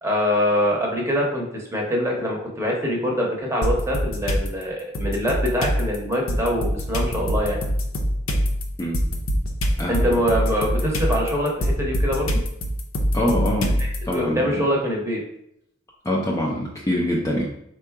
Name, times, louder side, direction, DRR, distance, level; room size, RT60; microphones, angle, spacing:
voice 1, 0.0-7.6 9.9-12.4 13.8-15.2, equal, 15° right, -1 dB, 0.8 m, -24 dB
sound 1, 3.6-4.5 4.9-14.1, equal, 70° left, 0.6 m, -24 dB
voice 2, 9.8-10.2 13.1-14.6 16.0-17.5, left 1 dB, 15° left, -3 dB, 0.4 m, -25 dB
3.7 x 2.3 x 4.5 m, 0.77 s
head